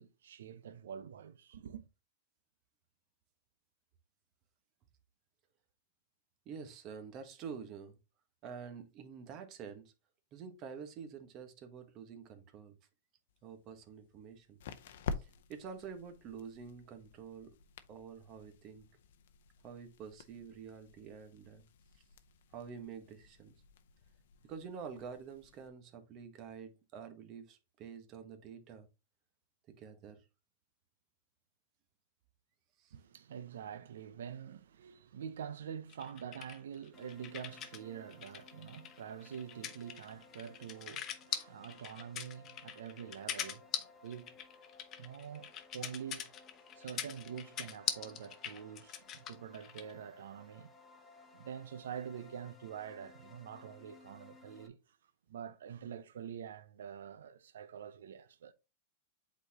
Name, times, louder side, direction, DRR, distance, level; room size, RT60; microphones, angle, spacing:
voice 1, 0.0-1.8 32.9-43.7 44.0-44.4 45.0-46.3 46.8-50.7 51.3-55.0 55.3-58.5, right 8 dB, 80° right, 0.5 m, -46 dB
voice 2, 6.4-8.0 8.4-9.9 10.3-12.8 13.4-14.6 15.1-17.5 17.9-18.9 19.6-21.6 22.5-23.5 24.4-28.9 29.7-30.2 32.8-32.9, right 6 dB, 40° right, 1.3 m, -48 dB
sound 1, 13.3-25.7, left 5 dB, 70° left, 0.6 m, -49 dB
sound 2, 35.9-37.8 38.1-49.9, left 9 dB, 30° left, 0.9 m, -42 dB
sound 3, 36.9-54.7, left 4 dB, 10° left, 1.1 m, -60 dB
8.1 x 4.1 x 2.9 m
hypercardioid pair, 135°, 0 cm